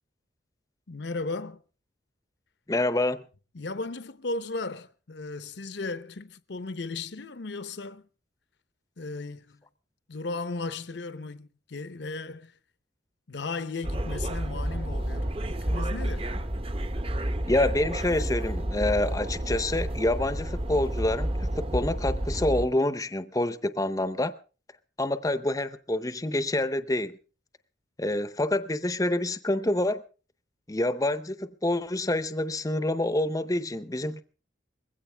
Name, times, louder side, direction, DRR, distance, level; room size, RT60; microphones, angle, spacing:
voice 1, 0.9-1.6 3.5-8.0 9.0-9.6 10.1-12.6 13.3-16.3, left 3 dB, 65° left, 0.8 m, -36 dB
voice 2, 2.7-3.2 17.5-24.3 25.0-27.2 28.0-30.0 30.7-34.2, left 1 dB, 20° left, 0.6 m, -27 dB
sound 1, 13.8-22.7, right 1 dB, 30° right, 0.9 m, -30 dB
21.0 x 16.0 x 3.4 m
head